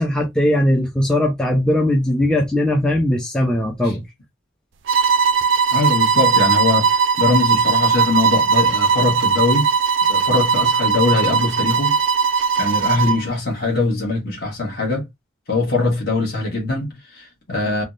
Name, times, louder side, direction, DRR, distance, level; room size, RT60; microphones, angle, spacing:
voice 1, 0.0-4.0, left 1 dB, 5° left, 0.4 m, -19 dB
sound 1, 4.9-13.2, right 6 dB, 65° right, 0.3 m, -18 dB
voice 2, 5.7-9.7 10.1-12.0 12.6-15.0 15.5-17.8, left 3 dB, 50° left, 1.1 m, -22 dB
3.4 x 2.1 x 2.5 m
head